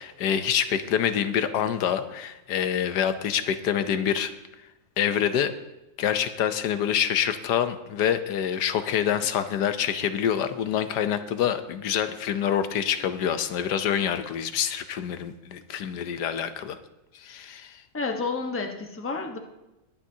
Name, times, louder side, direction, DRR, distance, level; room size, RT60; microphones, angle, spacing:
voice 1, 0.0-4.3 5.0-5.5 6.0-16.8 17.1-17.8, left 9 dB, 85° left, 10 dB, 1.3 m, -26 dB
voice 2, 17.9-19.4, left 4 dB, 10° left, 3 dB, 0.8 m, -30 dB
21.5 x 8.7 x 2.8 m, 0.99 s
omnidirectional pair, 1.8 m